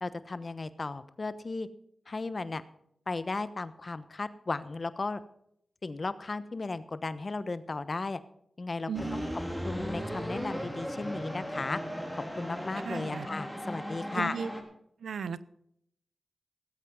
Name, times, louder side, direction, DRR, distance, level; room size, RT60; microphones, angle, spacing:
voice 1, 0.0-1.7 2.1-2.6 3.1-5.2 5.8-8.2 8.6-9.2 9.6-11.8 12.1-14.3, left 3 dB, 50° left, 14 dB, 1.0 m, -35 dB
sound 1, 8.9-14.6, equal, 5° right, 3.4 m, -37 dB
voice 2, 8.9-9.3 12.8-13.3 14.1-14.5 15.0-15.4, right 6 dB, 90° right, 17 dB, 0.6 m, -36 dB
18.0 x 8.4 x 5.5 m, 0.72 s
cardioid pair, 50°, 0 cm